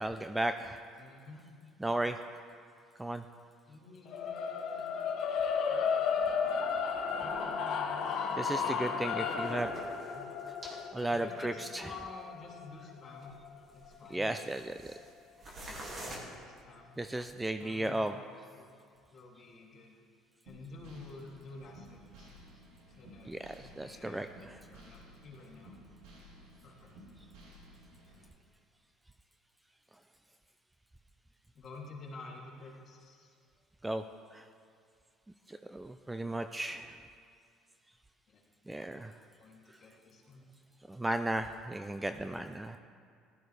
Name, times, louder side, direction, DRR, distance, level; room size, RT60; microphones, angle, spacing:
voice 1, 0.0-0.8 1.8-2.2 3.0-3.2 8.4-9.7 10.9-11.8 14.1-14.9 17.0-18.2 23.3-24.6 33.8-34.0 34.3-34.4 35.5-37.0 38.7-39.1 40.9-42.8, right 1 dB, 10° right, 8 dB, 0.4 m, -35 dB
voice 2, 1.0-1.5 3.7-4.9 5.7-6.0 7.2-10.3 11.1-13.4 13.7-14.3 16.0-17.0 17.6-18.3 18.6-18.7 19.1-19.9 20.4-22.3 23.0-23.3 23.8-24.3 24.7-25.7 26.6-26.9 31.5-33.3 38.3-38.4 39.4-40.5, left 3 dB, 40° left, -4 dB, 2.7 m, -50 dB
sound 1, 4.1-14.3, left 6 dB, 55° left, 1.1 m, -34 dB
sound 2, 6.3-6.4 7.3-7.4 7.9-8.0 9.3-10.8 11.1-11.2 11.9-12.0 12.4-12.5 13.2-13.5 13.8-15.1 15.4-16.2, right 1 dB, 35° right, 2.2 m, -47 dB
sound 3, 20.5-28.3, equal, 85° right, 3.2 m, -55 dB
15.5 x 12.5 x 3.3 m, 2.2 s
cardioid pair, 120°, 0 cm